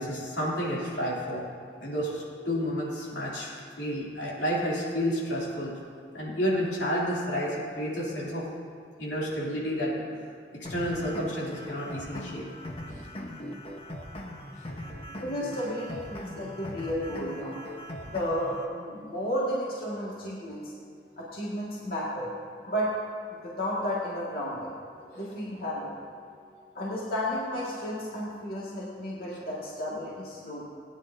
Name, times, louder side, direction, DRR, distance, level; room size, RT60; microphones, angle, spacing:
voice 1, 0.0-1.4 1.8-3.5 3.8-5.7 6.1-8.5 9.0-10.0 10.5-12.4 12.9-13.0, equal, 85° left, -5 dB, 3.0 m, -30 dB
sound 1, 10.6-18.6, equal, 30° left, 1.1 m, -40 dB
voice 2, 15.2-17.6 18.1-20.7 21.2-22.3 22.6-22.9 23.4-24.8 25.1-25.9 26.7-30.6, equal, 55° left, -7 dB, 1.9 m, -32 dB
20.0 x 9.6 x 2.7 m, 2.2 s
head